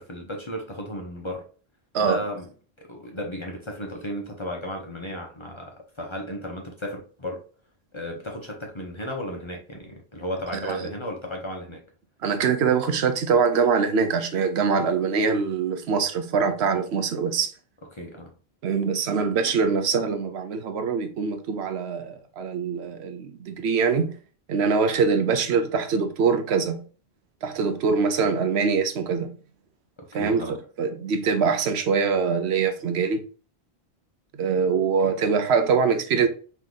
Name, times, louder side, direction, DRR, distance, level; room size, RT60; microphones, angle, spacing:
voice 1, 0.0-1.4 2.0-2.5 2.8-7.4 7.9-11.8 17.9-18.3 30.1-30.6 35.0-35.2, left 1 dB, 35° left, 0.6 m, -34 dB
voice 2, 12.2-17.5 18.6-24.1 24.5-26.8 27.4-29.3 30.1-33.2 34.4-36.3, right 5 dB, 75° right, 0.9 m, -23 dB
3.2 x 3.0 x 3.7 m
omnidirectional pair, 1.1 m